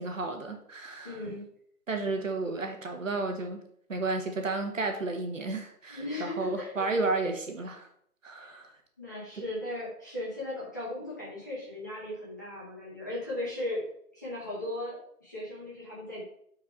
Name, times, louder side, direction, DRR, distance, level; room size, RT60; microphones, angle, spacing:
voice 1, 0.0-1.2 1.9-3.6 3.9-7.9 8.2-8.7 9.4-9.5, right 3 dB, 55° right, 4 dB, 1.3 m, -32 dB
voice 2, 1.0-1.5 5.9-6.9 8.4-8.5 9.0-13.9 14.1-16.2, left 1 dB, 10° left, -8 dB, 1.0 m, -37 dB
7.3 x 4.7 x 4.5 m, 0.68 s
figure-of-eight pair, 165°, 47 cm